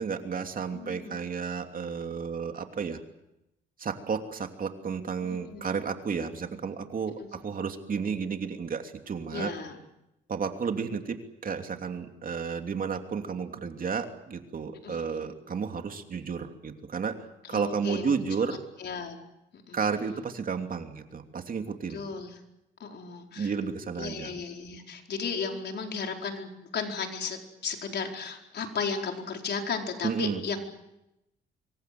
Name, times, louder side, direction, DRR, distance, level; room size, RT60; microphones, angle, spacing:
voice 1, 0.0-3.0 3.8-9.5 10.3-11.2 11.4-17.1 17.5-18.6 19.7-22.0 23.4-24.3 30.0-30.4, right 6 dB, 45° right, 5 dB, 3.0 m, -32 dB
voice 2, 0.7-1.2 5.2-5.7 7.2-7.3 9.3-9.8 14.8-15.0 17.4-18.2 18.8-19.2 19.5-19.8 21.9-22.4 22.8-23.5 24.0-30.6, left 5 dB, 60° left, 3 dB, 4.6 m, -35 dB
26.5 x 23.5 x 7.9 m, 0.89 s
cardioid pair, 90°, 20 cm